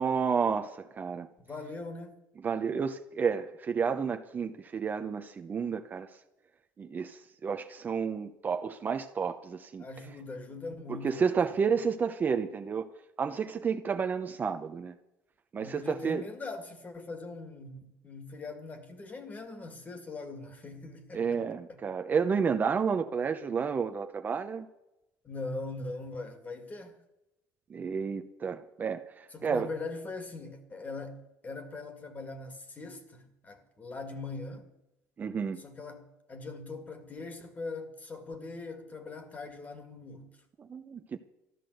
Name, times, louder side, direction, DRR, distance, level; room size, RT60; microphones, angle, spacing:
voice 1, 0.0-1.3 2.4-6.1 6.8-9.8 10.9-12.9 13.2-15.0 15.5-16.2 21.1-24.7 27.7-29.7 35.2-35.6 40.6-41.2, right 6 dB, 30° right, 0.7 m, -31 dB
voice 2, 1.4-2.2 9.8-11.3 15.6-21.4 21.7-21.8 25.2-27.0 29.3-34.7 35.6-40.3, left 3 dB, 25° left, 2.1 m, -41 dB
13.5 x 10.5 x 7.9 m
cardioid pair, 130°, 6 cm